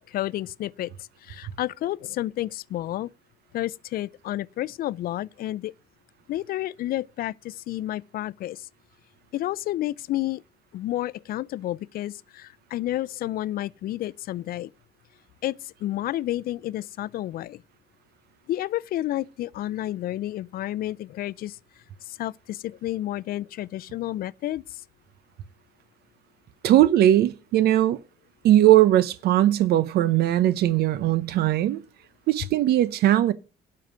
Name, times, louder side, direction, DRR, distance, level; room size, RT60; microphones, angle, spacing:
voice 1, 0.1-3.1 3.5-5.7 6.3-8.7 9.3-10.4 10.7-14.7 15.4-17.6 18.5-21.6 22.0-24.8, left 14 dB, 60° left, 0.5 m, -30 dB
voice 2, 26.6-28.0 28.4-31.8 32.3-33.3, right 13 dB, 70° right, 0.8 m, -19 dB
12.0 x 5.8 x 9.1 m
cardioid pair, 110°, 17 cm